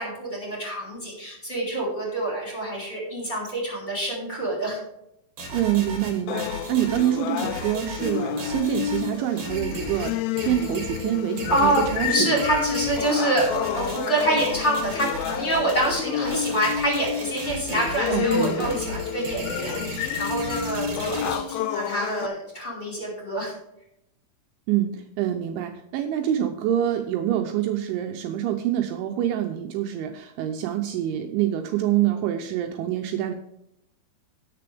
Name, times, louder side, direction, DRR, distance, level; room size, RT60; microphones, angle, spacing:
voice 1, 0.0-4.8 11.5-23.5, right 1 dB, 15° left, -4 dB, 4.3 m, -26 dB
sound 1, 5.4-21.4, right 2 dB, 50° right, 3.9 m, -36 dB
voice 2, 5.5-10.2 10.4-12.5 18.0-18.7 24.7-33.3, right 11 dB, 80° right, 4 dB, 3.0 m, -26 dB
sound 2, 6.3-22.3, left 10 dB, 80° left, 3.0 m, -30 dB
18.0 x 6.9 x 3.5 m, 0.80 s
omnidirectional pair, 5.8 m